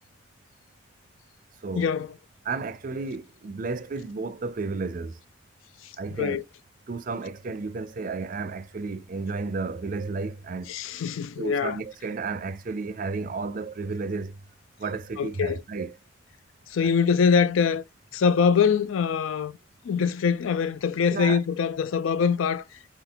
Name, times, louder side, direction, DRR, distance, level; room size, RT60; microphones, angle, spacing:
voice 1, 1.7-2.1 5.8-5.9 6.2-6.4 10.7-11.8 15.2-15.6 16.7-17.8 18.1-19.5 19.8-22.9, left 6 dB, 85° left, 0.4 m, -23 dB
voice 2, 2.5-5.2 6.0-6.4 6.9-10.7 11.4-14.4 14.8-15.9 16.8-16.9 21.1-21.4, right 4 dB, 45° right, 0.4 m, -32 dB
5.6 x 2.3 x 3.7 m
head